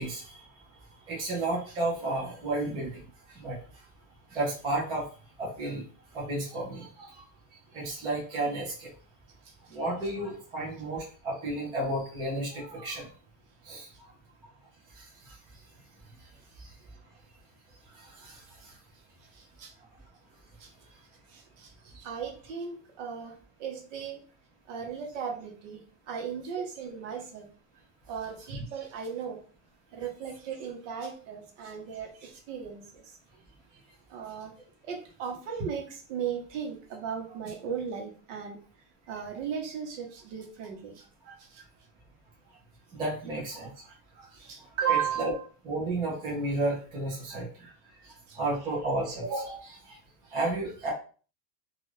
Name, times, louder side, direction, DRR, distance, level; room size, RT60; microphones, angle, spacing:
voice 1, 0.0-3.9 4.3-5.1 5.4-5.9 6.1-7.2 7.7-8.9 9.7-13.1 13.6-14.1 14.9-15.6 16.2-16.3 16.6-16.8 17.9-18.8 41.2-41.3 42.9-45.3 45.6-50.0 50.3-50.9, right 2 dB, 10° right, 0.4 m, -33 dB
voice 2, 9.4-9.8 19.3-19.7 20.6-20.7 21.3-24.2 24.7-27.5 28.1-29.4 29.9-33.2 34.1-34.5 34.8-38.6 39.1-41.0 41.4-41.6 44.4-45.5 48.3-48.4, right 7 dB, 50° right, 1.0 m, -36 dB
2.5 x 2.3 x 3.1 m
supercardioid pair, 165°, 45 cm